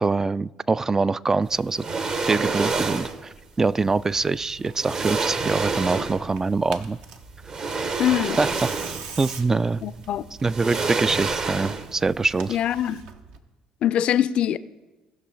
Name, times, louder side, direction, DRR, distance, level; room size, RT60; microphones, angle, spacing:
voice 1, 0.0-1.9 2.3-7.0 8.4-9.8 10.4-12.6, right 3 dB, 20° right, 0.3 m, -24 dB
sound 1, 1.7-3.3 4.3-4.4 4.8-6.4 7.5-9.2 9.5-9.6 10.4-12.1 12.3-12.5, right 4 dB, 40° right, 1.0 m, -28 dB
Tearing, 4.0-13.4, right 5 dB, 65° right, 0.9 m, -44 dB
voice 2, 8.0-8.4 9.8-10.2 12.5-13.0 13.8-14.6, left 11 dB, 55° left, 0.4 m, -23 dB
18.0 x 6.1 x 3.9 m
hypercardioid pair, 55°, 2 cm